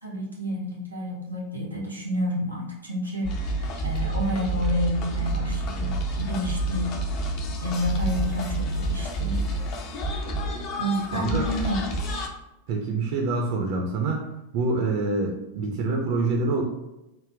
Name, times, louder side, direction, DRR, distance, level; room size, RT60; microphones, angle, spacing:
voice 1, 0.0-6.9 7.6-9.4 10.8-11.9, equal, 85° right, -3 dB, 1.1 m, -29 dB
sound 1, 3.2-12.3, right 1 dB, 40° left, 0.5 m, -29 dB
voice 2, 11.1-11.5 12.7-14.2 14.5-16.6, right 3 dB, 45° right, 0 dB, 0.5 m, -26 dB
3.9 x 2.1 x 3.5 m, 0.92 s
figure-of-eight pair, 90°, 0 cm